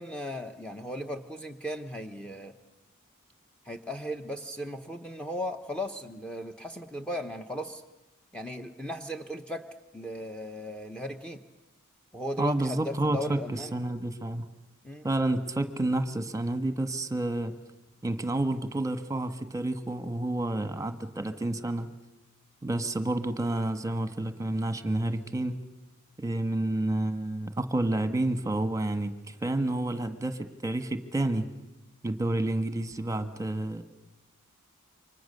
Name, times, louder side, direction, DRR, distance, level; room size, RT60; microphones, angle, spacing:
voice 1, 0.0-2.5 3.6-7.8 8.3-9.6 9.9-11.4 12.1-13.8 14.8-15.1, equal, 5° left, 5 dB, 1.0 m, -36 dB
voice 2, 12.4-14.5 15.0-17.5 18.0-21.9 22.6-25.5 26.2-31.5 32.0-33.8, right 2 dB, 15° right, 9 dB, 1.4 m, -29 dB
29.0 x 25.0 x 6.7 m, 1.0 s
head